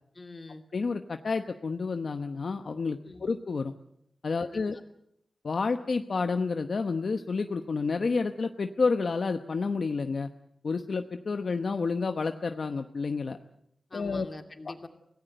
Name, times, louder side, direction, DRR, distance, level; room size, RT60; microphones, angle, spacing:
voice 1, 0.1-0.6 3.0-3.3 4.4-4.8 13.9-14.9, left 2 dB, 40° left, 5 dB, 2.6 m, -44 dB
voice 2, 0.7-3.7 4.2-4.8 5.4-10.3 10.6-13.4 13.9-14.3, left 4 dB, 65° left, 7 dB, 0.9 m, -30 dB
25.0 x 18.0 x 7.8 m, 0.75 s
wide cardioid pair, 85°, 0 cm